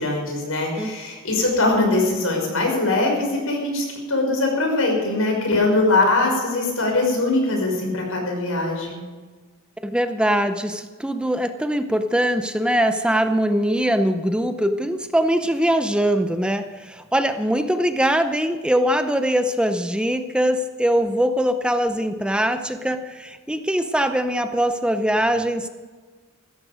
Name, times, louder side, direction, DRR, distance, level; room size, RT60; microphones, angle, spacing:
voice 1, 0.0-9.0, left 2 dB, 85° left, 1 dB, 5.8 m, -21 dB
voice 2, 9.8-25.7, equal, 5° right, 8 dB, 0.6 m, -22 dB
15.0 x 14.0 x 5.1 m, 1.4 s
head